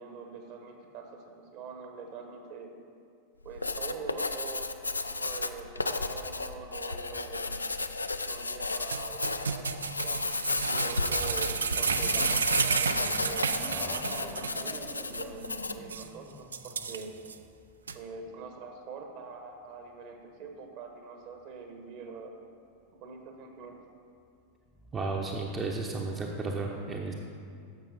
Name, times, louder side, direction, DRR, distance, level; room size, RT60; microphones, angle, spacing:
voice 1, 0.0-2.7 3.4-4.7 5.1-7.6 8.2-13.4 14.0-17.1 17.9-22.3 23.0-23.8, right 4 dB, 45° right, 4 dB, 1.2 m, -44 dB
Writing, 3.4-15.9, left 3 dB, 80° left, 0.4 m, -33 dB
sound 1, 7.0-7.5 7.9-8.0 11.6-18.1 23.0-23.1 24.7-26.0, left 1 dB, 5° left, 0.8 m, -47 dB
sound 2, 8.9-14.6 14.9-15.0 15.4-15.5 15.9-16.1 16.5-17.3 17.9-18.0, right 5 dB, 70° right, 0.4 m, -31 dB
voice 2, 24.9-27.1, right 3 dB, 20° right, 0 dB, 0.8 m, -33 dB
11.0 x 7.1 x 4.2 m, 2.4 s
figure-of-eight pair, 90°, 0 cm